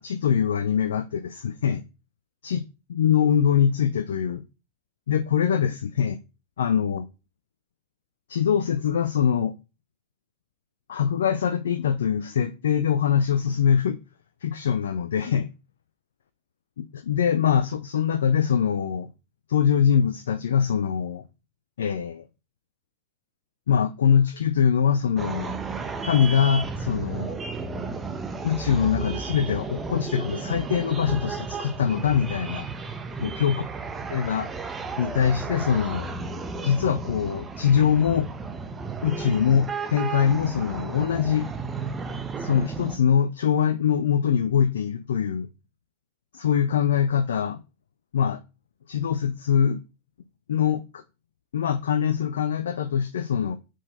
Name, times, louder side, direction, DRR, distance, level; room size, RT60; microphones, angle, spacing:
voice 1, 0.0-1.8 2.4-2.6 2.9-4.4 5.1-6.2 6.6-7.0 8.3-9.6 10.9-14.0 14.4-15.5 16.8-19.1 19.5-21.2 21.8-22.2 23.7-25.5 26.0-27.4 28.4-32.7 33.2-33.6 34.1-34.5 35.0-36.1 36.6-38.3 39.0-41.5 42.4-45.5 46.3-47.6 48.1-48.4 48.9-49.8 50.5-51.0 51.5-53.6, left 8 dB, 65° left, 0.7 m, -23 dB
sound 1, 25.2-43.0, right 4 dB, 15° right, 1.3 m, -33 dB
7.4 x 6.6 x 4.0 m
figure-of-eight pair, 90°, 0 cm